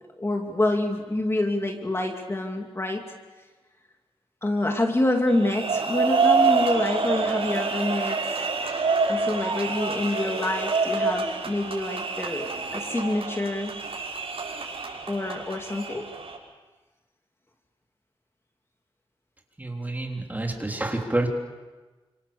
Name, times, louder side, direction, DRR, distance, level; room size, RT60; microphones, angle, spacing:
voice 1, 0.2-3.1 4.4-8.5 9.1-13.8 15.1-16.1, left 1 dB, 25° left, 2 dB, 2.5 m, -27 dB
sound 1, 5.3-16.4, right 4 dB, 75° right, 6.2 m, -27 dB
voice 2, 19.6-21.3, right 2 dB, 15° right, 1 dB, 3.7 m, -28 dB
30.0 x 26.5 x 7.1 m, 1.2 s
wide cardioid pair, 120°, 10 cm